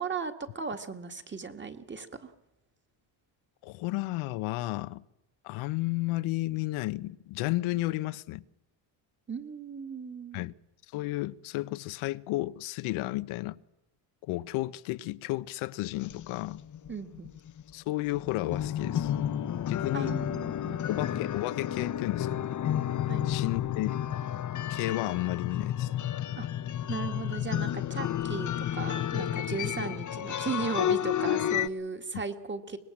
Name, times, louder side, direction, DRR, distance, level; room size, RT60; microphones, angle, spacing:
voice 1, 0.0-2.3 9.3-10.4 16.9-17.3 19.9-21.0 23.1-23.3 26.4-26.5 26.9-32.8, right 5 dB, 25° right, 2.0 m, -36 dB
voice 2, 3.6-5.0 5.4-8.4 10.3-10.5 10.9-13.6 14.2-16.6 17.7-19.1 19.7-20.1 20.9-22.3 23.2-23.9 24.7-25.9, left 18 dB, 85° left, 1.0 m, -32 dB
sound 1, 16.0-17.7 18.1-31.7, left 11 dB, 40° left, 0.9 m, -31 dB
24.5 x 20.0 x 7.3 m
cardioid pair, 125°, 48 cm